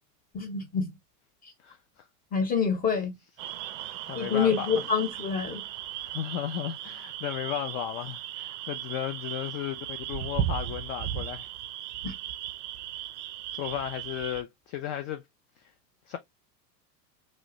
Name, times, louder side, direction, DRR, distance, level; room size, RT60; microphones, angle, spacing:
voice 1, 0.3-1.0 1.4-1.5 2.3-3.2 4.1-5.6 12.0-12.1, left 6 dB, 15° left, 1.0 m, -27 dB
sound 1, 3.4-14.4, right 11 dB, 50° right, 0.5 m, -36 dB
voice 2, 3.8-4.7 6.0-11.5 13.5-15.2 15.6-15.7 16.1-16.2, left 11 dB, 40° left, 0.5 m, -35 dB
3.0 x 2.6 x 3.0 m
hypercardioid pair, 105°, 49 cm